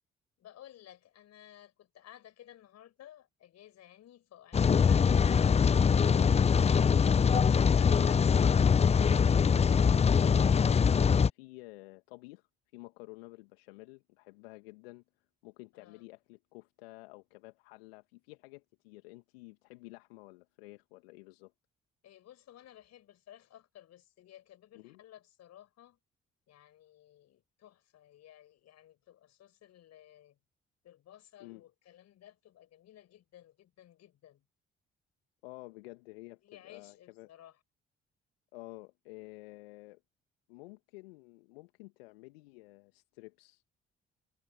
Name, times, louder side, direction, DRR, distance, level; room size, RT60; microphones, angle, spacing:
voice 1, 0.4-6.3 15.7-16.0 22.0-26.0 26.5-30.4 30.8-34.4 36.4-37.6, left 12 dB, 60° left, 4.9 m, -56 dB
Rain, 4.5-11.3, left 6 dB, 20° left, 0.5 m, -23 dB
voice 2, 9.3-12.5 12.7-15.0 15.4-21.5 24.7-25.0 31.4-31.6 35.4-37.3 38.5-40.0 40.5-43.6, left 24 dB, 75° left, 2.1 m, -51 dB
figure-of-eight pair, 45°, 30 cm